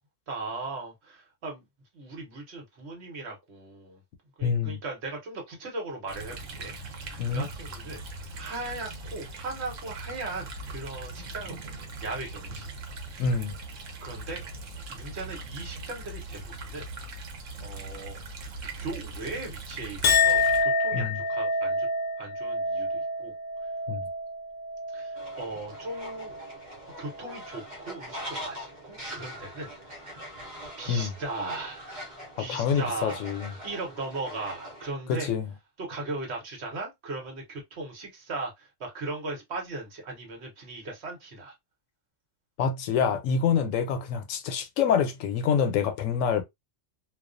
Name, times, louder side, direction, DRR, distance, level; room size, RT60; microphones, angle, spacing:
voice 1, 0.3-1.7 1.9-4.0 4.4-8.0 8.3-12.7 13.1-13.2 14.0-14.4 14.9-16.9 17.6-18.2 18.6-21.9 22.2-23.3 24.9-26.4 27.0-29.7 30.8-31.9 32.4-33.2 33.6-35.3 35.8-41.5, right 2 dB, 60° right, 1.1 m, -38 dB
voice 2, 4.4-4.8 7.2-7.5 13.2-13.5 20.9-21.2 23.9-24.1 30.9-31.1 32.5-33.5 35.1-35.5 42.6-46.4, left 6 dB, 90° left, 1.0 m, -26 dB
sound 1, 6.1-20.6, right 3 dB, 80° right, 1.0 m, -40 dB
Chink clink, 20.0-26.6 27.0-27.6, left 3 dB, 65° left, 0.4 m, -28 dB
Fowl, 25.1-34.9, equal, 40° right, 0.9 m, -42 dB
2.4 x 2.3 x 2.4 m
omnidirectional pair, 1.3 m